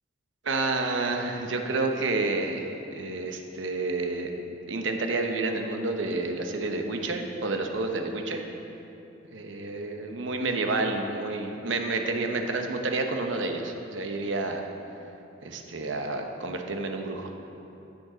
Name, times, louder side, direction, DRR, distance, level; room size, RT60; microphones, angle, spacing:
voice 1, 0.4-4.3 4.7-8.4 9.3-14.7 15.4-17.3, right 3 dB, 70° right, 4 dB, 0.9 m, -29 dB
15.0 x 6.5 x 3.9 m, 2.9 s
head